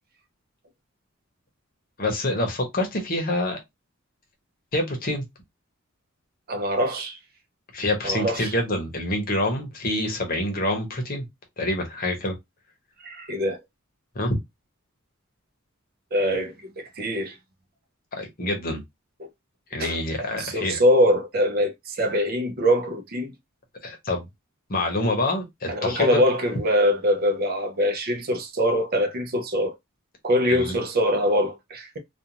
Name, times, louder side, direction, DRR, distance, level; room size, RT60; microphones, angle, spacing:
voice 1, 2.0-3.6 4.7-5.2 7.7-11.2 11.6-12.3 14.1-14.4 18.1-18.8 19.7-20.8 23.8-24.3 24.7-26.2 30.5-30.8, left 1 dB, 40° left, 0.9 m, -26 dB
voice 2, 6.5-7.2 8.0-8.5 13.0-13.6 16.1-17.4 19.2-19.3 19.8-23.3 25.7-29.7 30.2-32.0, equal, 45° right, 0.5 m, -23 dB
2.4 x 2.4 x 2.9 m
head